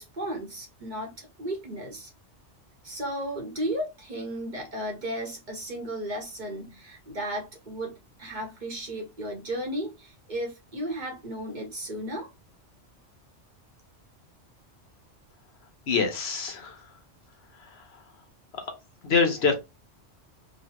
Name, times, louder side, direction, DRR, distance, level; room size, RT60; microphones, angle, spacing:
voice 1, 0.0-2.1 2.8-12.3, right 1 dB, 45° right, 0.9 m, -34 dB
voice 2, 15.9-16.8 19.0-19.5, left 5 dB, 65° left, 1.0 m, -24 dB
3.2 x 2.2 x 2.8 m
omnidirectional pair, 1.2 m